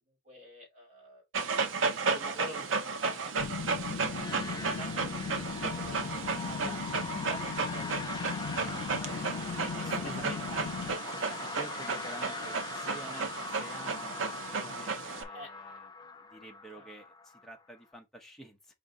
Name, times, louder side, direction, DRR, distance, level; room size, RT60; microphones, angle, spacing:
voice 1, 0.1-1.2 2.1-3.3 3.7-5.2 5.6-6.8 7.1-12.0 13.1-13.2 15.3-15.5 16.7-16.9, right 1 dB, 40° right, 2.7 m, -48 dB
Dog, 1.3-15.2, right 4 dB, 85° right, 0.7 m, -34 dB
sound 1, 3.4-11.0, left 5 dB, 90° left, 0.5 m, -38 dB
sound 2, 4.1-17.8, left 4 dB, 20° left, 0.4 m, -42 dB
voice 2, 8.9-9.4 9.7-10.4 11.4-18.7, right 1 dB, ahead, 0.8 m, -49 dB
5.1 x 2.6 x 3.7 m
head